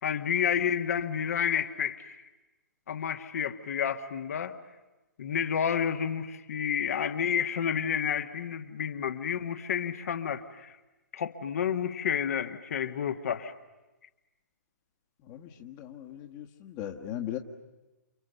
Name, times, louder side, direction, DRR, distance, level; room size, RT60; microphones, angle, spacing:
voice 1, 0.0-2.1 2.9-4.6 5.2-10.8 11.1-13.5, left 8 dB, 55° left, 8 dB, 1.6 m, -30 dB
voice 2, 15.3-17.4, left 11 dB, 30° left, 4 dB, 1.6 m, -38 dB
29.0 x 28.5 x 7.0 m, 1.1 s
figure-of-eight pair, 125°, 10 cm